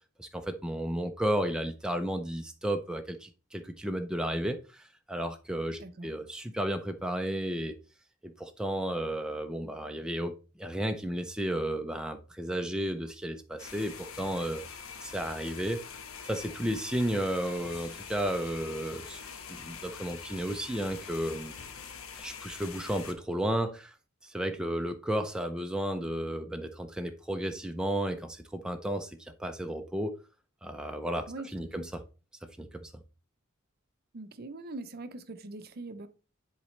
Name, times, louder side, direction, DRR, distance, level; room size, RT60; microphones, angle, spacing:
voice 1, 0.2-7.7 8.2-14.6 15.0-15.8 16.2-19.2 19.5-21.5 22.2-23.9 24.2-30.2 30.6-31.3 31.5-32.0 32.6-32.9, right 1 dB, 5° right, 0.4 m, -33 dB
sound 1, 13.6-23.1, left 6 dB, 80° left, 1.0 m, -44 dB
voice 2, 31.3-31.9 34.1-36.1, right 2 dB, 45° right, 0.6 m, -42 dB
10.0 x 4.0 x 3.2 m
head